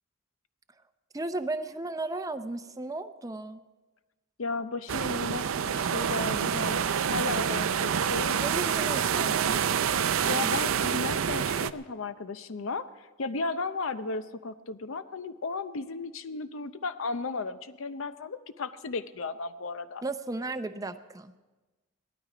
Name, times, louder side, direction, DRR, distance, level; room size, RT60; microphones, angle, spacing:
voice 1, 1.1-3.6 8.4-9.6 20.0-21.4, right 2 dB, 15° right, 9 dB, 0.6 m, -35 dB
voice 2, 4.4-8.4 10.2-20.0, left 4 dB, 70° left, 12 dB, 0.6 m, -35 dB
sound 1, 4.9-11.7, right 7 dB, 75° right, 0.5 m, -27 dB
17.5 x 12.5 x 5.0 m, 1.2 s
head